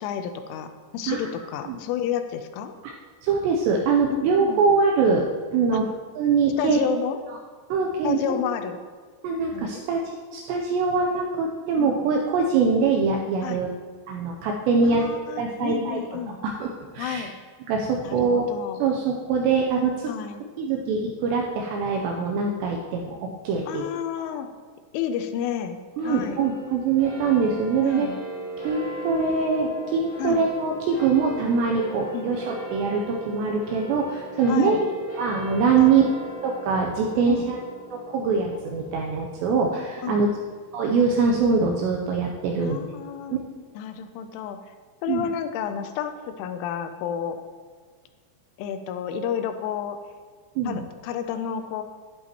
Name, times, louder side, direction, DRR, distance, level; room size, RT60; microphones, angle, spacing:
voice 1, 0.0-2.7 4.1-4.6 5.7-5.8 6.6-7.2 8.0-8.8 9.5-9.9 11.8-12.0 13.4-13.7 14.8-16.4 17.0-17.3 18.0-18.8 20.1-20.5 23.7-24.5 24.9-25.8 26.0-26.4 27.8-28.2 30.2-30.5 32.1-32.3 34.5-34.8 35.8-35.9 37.3-37.4 40.0-40.3 42.6-43.4 43.8-44.6 45.0-47.4 48.6-50.0 50.7-51.8, left 8 dB, 85° left, 8 dB, 3.0 m, -30 dB
voice 2, 3.2-5.2 5.5-6.9 7.7-8.4 9.2-13.7 14.1-15.1 15.4-17.2 17.7-18.5 18.8-20.1 20.6-23.9 24.3-24.4 26.0-28.1 28.6-34.9 35.2-36.0 36.4-37.6 37.9-40.3 40.7-42.8 43.3-43.4 45.1-45.3 50.6-50.8, right 5 dB, 85° right, 0 dB, 2.5 m, -23 dB
sound 1, 26.0-42.7, right 1 dB, 55° left, 0.3 m, -38 dB
11.0 x 10.5 x 2.9 m, 1.5 s
omnidirectional pair, 5.7 m